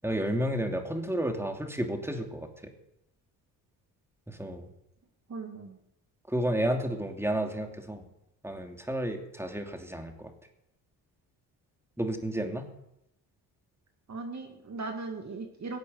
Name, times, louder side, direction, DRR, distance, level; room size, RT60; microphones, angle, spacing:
voice 1, 0.0-2.7 4.3-4.7 6.3-8.0 8.4-10.3 12.0-12.7, right 1 dB, 5° right, 4 dB, 2.8 m, -31 dB
voice 2, 5.3-5.8 14.1-15.8, right 3 dB, 40° right, 4 dB, 2.3 m, -38 dB
17.5 x 8.4 x 8.0 m, 0.86 s
supercardioid pair, 70°, 42 cm